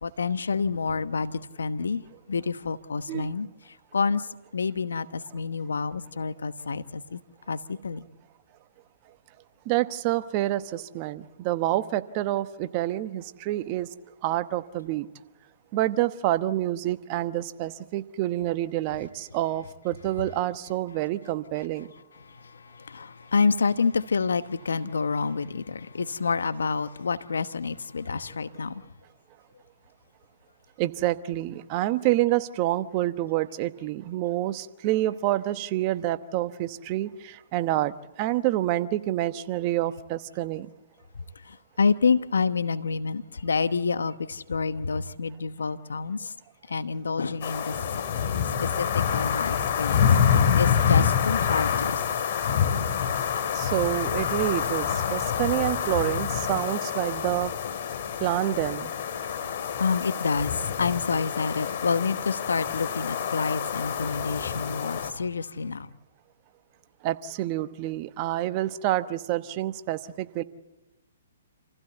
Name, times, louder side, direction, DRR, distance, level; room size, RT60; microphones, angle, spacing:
voice 1, 0.0-2.0 2.3-3.5 3.9-7.2 7.5-8.0 22.1-28.9 41.4-46.3 46.7-47.8 48.4-52.2 59.2-65.9, left 5 dB, 80° left, 1.0 m, -28 dB
voice 2, 9.7-13.9 14.2-15.1 15.7-21.9 30.8-37.9 38.2-40.7 53.5-57.5 58.2-58.9 67.0-70.4, right 15 dB, 35° right, 1.0 m, -27 dB
sound 1, 47.4-65.1, left 7 dB, 50° left, 2.5 m, -27 dB
27.5 x 15.5 x 8.1 m
hypercardioid pair, 130°, 0 cm